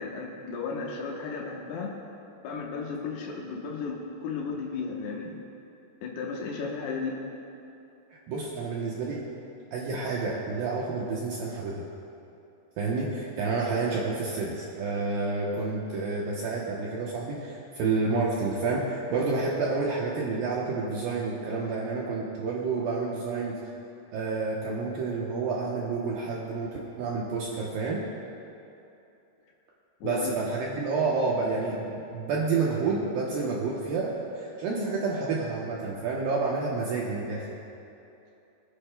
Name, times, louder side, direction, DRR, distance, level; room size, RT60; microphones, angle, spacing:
voice 1, 0.0-1.9 2.4-5.4 6.0-7.2 30.0-30.5, left 4 dB, 70° left, -2 dB, 2.8 m, -34 dB
voice 2, 8.1-9.2 9.7-11.9 12.8-23.6 24.1-26.7 27.0-28.0 30.0-37.5, right 4 dB, 75° right, -4 dB, 2.2 m, -29 dB
24.0 x 10.0 x 2.2 m, 2.8 s
omnidirectional pair, 5.1 m